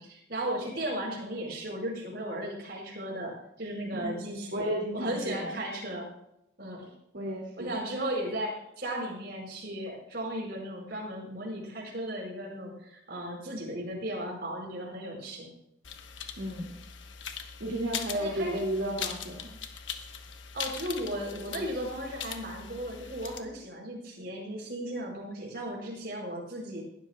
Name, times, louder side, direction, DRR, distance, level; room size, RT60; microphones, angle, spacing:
voice 1, 0.0-4.7 4.9-6.1 6.6-6.9 7.6-15.5 18.1-18.6 20.5-26.8, right 1 dB, 55° right, -2 dB, 5.3 m, -36 dB
voice 2, 3.9-5.5 7.1-7.8 16.4-16.7 17.6-19.5, right 1 dB, 85° right, -3 dB, 2.5 m, -33 dB
sound 1, 15.8-23.4, left 7 dB, 85° left, 1.2 m, -41 dB
19.0 x 13.0 x 2.3 m, 0.80 s
head